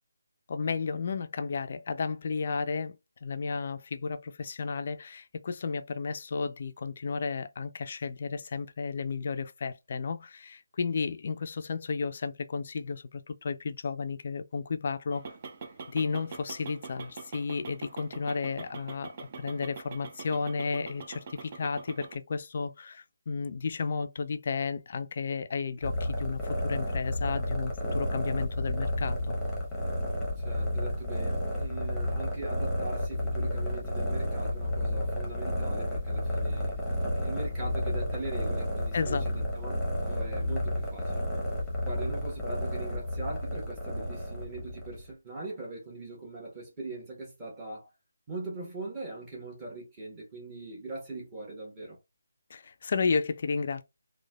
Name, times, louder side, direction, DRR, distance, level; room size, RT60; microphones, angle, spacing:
voice 1, 0.5-3.0 3.2-15.3 15.9-29.4 38.9-39.3 52.5-53.8, left 5 dB, 45° left, 0.3 m, -33 dB
sound 1, 15.1-22.2, right 5 dB, 35° right, 0.5 m, -44 dB
sound 2, 25.8-45.1, left 1 dB, 5° left, 0.8 m, -31 dB
voice 2, 30.4-36.9 37.1-39.7 40.1-41.2 41.8-47.9 48.3-52.0, right 2 dB, 20° right, 1.0 m, -41 dB
3.1 x 2.1 x 2.2 m
figure-of-eight pair, 155°, 0 cm